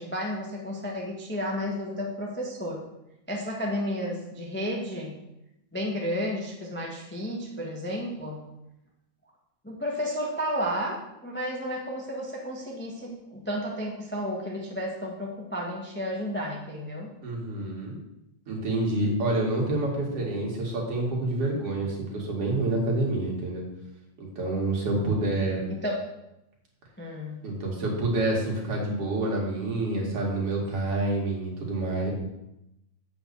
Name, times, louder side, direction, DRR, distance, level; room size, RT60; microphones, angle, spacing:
voice 1, 0.0-2.8 3.3-5.2 5.7-8.5 9.6-17.1 25.7-26.0 27.0-27.5, equal, 10° left, -1 dB, 0.5 m, -32 dB
voice 2, 17.2-18.0 18.5-23.7 24.2-25.7 27.4-32.1, right 2 dB, 55° right, -2 dB, 3.1 m, -28 dB
8.1 x 5.6 x 6.9 m, 0.88 s
omnidirectional pair, 3.3 m